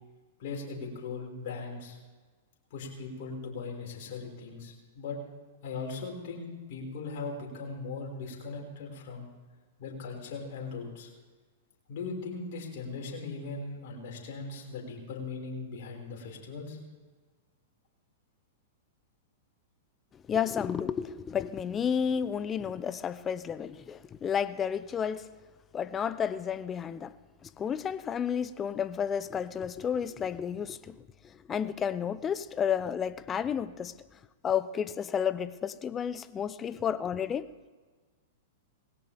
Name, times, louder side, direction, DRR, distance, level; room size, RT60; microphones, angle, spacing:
voice 1, 0.4-2.0 2.7-5.2 5.6-9.3 9.8-11.1 11.9-16.8, left 4 dB, 55° left, 5.6 m, -39 dB
voice 2, 20.3-25.3 25.7-27.1 27.4-30.9 31.5-33.9 34.4-37.5, left 8 dB, 25° left, 0.7 m, -31 dB
20.0 x 17.0 x 3.6 m
hypercardioid pair, 110°, 0 cm